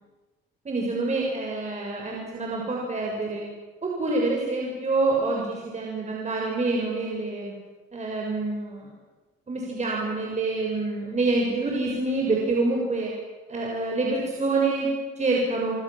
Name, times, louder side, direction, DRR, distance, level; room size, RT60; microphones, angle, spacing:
voice 1, 0.7-3.4 3.8-7.5 7.9-8.9 9.5-13.1 13.5-15.7, right 3 dB, 35° right, -1 dB, 7.0 m, -26 dB
27.5 x 26.5 x 7.6 m, 1.2 s
cardioid pair, 90°, 20 cm